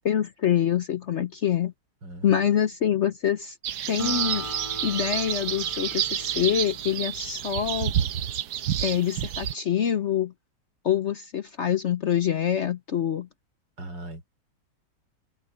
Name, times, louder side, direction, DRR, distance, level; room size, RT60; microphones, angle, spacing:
voice 1, 0.0-1.7 2.2-3.6 3.9-4.5 4.8-7.9 8.8-10.3 10.8-13.3, left 9 dB, 55° left, 0.8 m, -25 dB
voice 2, 2.0-2.5 13.8-14.3, right 1 dB, 85° right, 3.9 m, -39 dB
sound 1, 3.6-9.5, right 10 dB, 70° right, 1.3 m, -29 dB
Acoustic guitar, 4.0-7.6, left 3 dB, 20° left, 1.1 m, -40 dB
omnidirectional pair, 1.9 m